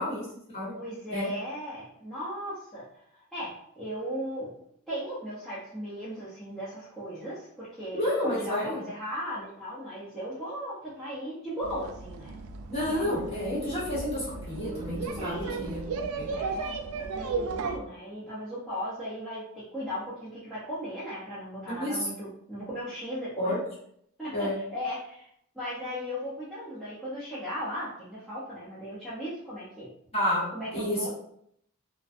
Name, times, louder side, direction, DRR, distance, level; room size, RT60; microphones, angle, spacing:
voice 1, 0.0-0.7 1.1-1.3 7.9-8.8 12.7-16.3 21.7-21.9 23.4-23.6 24.3-24.5 30.1-30.4 30.7-31.1, left 1 dB, 25° left, -7 dB, 0.9 m, -30 dB
voice 2, 0.7-4.5 4.9-12.4 12.8-13.1 15.2-15.6 16.3-23.5 24.2-25.3 25.5-29.9 30.5-31.1, equal, ahead, -11 dB, 0.5 m, -37 dB
sound 1, 11.6-17.8, right 4 dB, 80° right, 0.3 m, -35 dB
2.4 x 2.1 x 2.5 m, 0.70 s
head